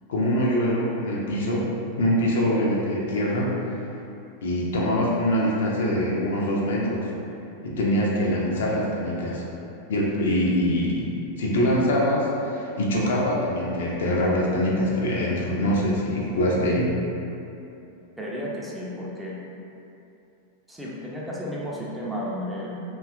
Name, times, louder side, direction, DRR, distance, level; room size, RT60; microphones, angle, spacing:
voice 1, 0.1-1.7 2.0-3.5 4.4-7.0 7.6-9.5 9.9-11.1 11.4-16.9, equal, 60° left, -4 dB, 0.4 m, -24 dB
voice 2, 18.2-19.4 20.7-22.8, equal, 5° right, -5 dB, 0.4 m, -33 dB
2.6 x 2.3 x 2.3 m, 2.7 s
figure-of-eight pair, 90°, 0 cm